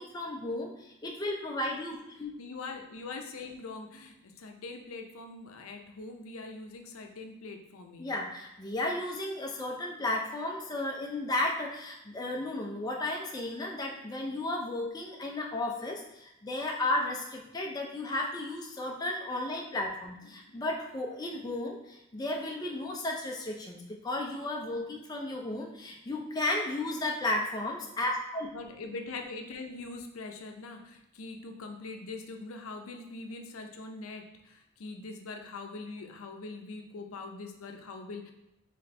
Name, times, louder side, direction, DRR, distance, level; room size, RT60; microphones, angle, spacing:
voice 1, 0.0-2.3 8.0-28.5, left 2 dB, 20° left, 0 dB, 0.4 m, -34 dB
voice 2, 2.4-8.1 20.3-20.6 28.5-38.3, left 3 dB, 85° left, 4 dB, 0.5 m, -43 dB
4.2 x 3.2 x 3.2 m, 0.87 s
head